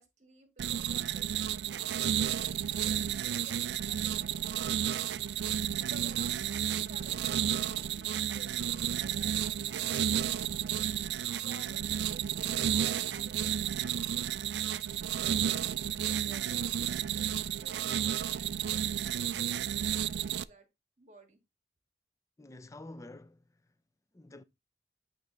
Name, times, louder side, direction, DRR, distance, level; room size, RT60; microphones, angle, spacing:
voice 1, 0.0-5.3 5.9-10.8 11.4-15.4 16.1-20.7 21.0-21.4, right 2 dB, 40° right, 1.7 m, -56 dB
sound 1, 0.6-20.4, right 10 dB, 70° right, 0.3 m, -32 dB
voice 2, 22.4-23.4 24.1-24.4, left 2 dB, 15° left, 0.5 m, -48 dB
8.3 x 3.1 x 3.9 m
head